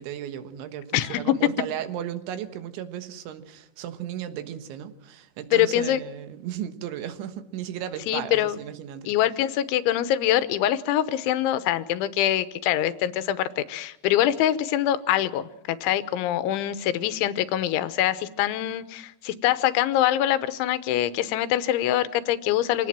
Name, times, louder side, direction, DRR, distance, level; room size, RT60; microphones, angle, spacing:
voice 1, 0.0-9.1, right 10 dB, 80° right, 9 dB, 3.7 m, -35 dB
voice 2, 5.5-6.0 8.1-8.6 9.1-22.9, left 12 dB, 80° left, 13 dB, 3.4 m, -24 dB
26.0 x 18.0 x 7.5 m, 0.82 s
omnidirectional pair, 5.4 m